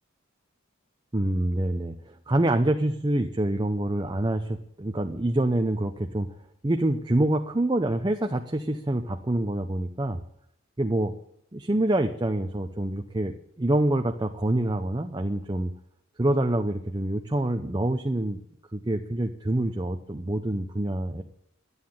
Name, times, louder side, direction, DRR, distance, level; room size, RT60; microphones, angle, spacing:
voice 1, 1.1-6.3 6.6-10.2 10.8-11.1 11.5-15.7 16.2-18.4 18.7-21.2, right 1 dB, 20° right, 5 dB, 0.6 m, -26 dB
11.0 x 9.7 x 8.7 m, 0.69 s
head